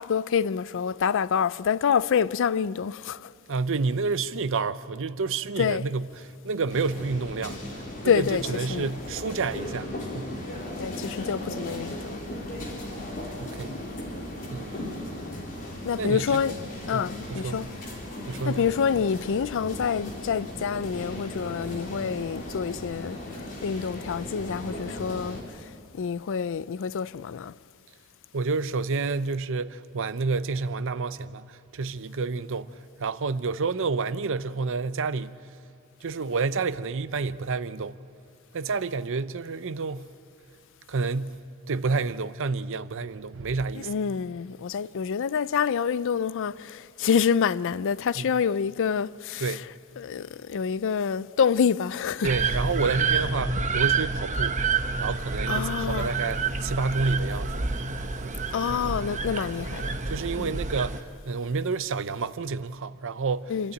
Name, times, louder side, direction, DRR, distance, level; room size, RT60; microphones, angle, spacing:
voice 1, 0.0-3.3 5.6-5.8 8.0-8.4 8.7-8.9 10.8-12.2 15.8-16.6 16.9-17.7 18.5-23.2 23.6-25.4 26.0-27.5 43.8-49.6 50.0-52.3 55.5-56.1 58.5-60.0 60.4-60.5 63.5-63.7, left 7 dB, 65° left, 0.4 m, -27 dB
voice 2, 3.5-10.4 13.4-13.8 14.5-15.0 16.0-16.4 16.9-17.6 18.3-18.6 28.3-32.7 33.0-35.4 36.0-38.0 38.5-40.1 40.9-41.4 41.7-43.9 48.2-48.3 49.4-49.6 52.2-54.6 55.0-57.7 58.2-58.4 60.0-63.7, right 4 dB, 65° right, 0.7 m, -29 dB
sound 1, 6.7-25.4, left 1 dB, 40° left, 3.9 m, -37 dB
sound 2, 52.2-61.0, right 4 dB, 35° right, 0.9 m, -28 dB
27.5 x 13.0 x 9.0 m
head